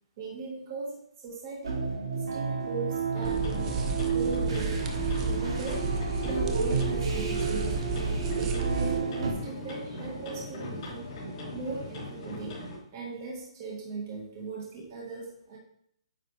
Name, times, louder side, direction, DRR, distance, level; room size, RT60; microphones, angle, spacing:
voice 1, 0.2-1.9 2.3-3.8 4.1-4.8 5.2-5.8 6.2-7.9 8.3-11.1 11.5-12.6 12.9-15.6, right 3 dB, 30° right, -2 dB, 1.7 m, -38 dB
sound 1, 1.6-9.3, right 5 dB, 80° right, 2.6 m, -30 dB
sound 2, 3.1-12.8, left 1 dB, 25° left, 2.9 m, -40 dB
sound 3, 3.2-9.0, right 4 dB, 15° right, 0.4 m, -33 dB
9.0 x 4.9 x 3.4 m, 0.68 s
hypercardioid pair, 175°, 3 cm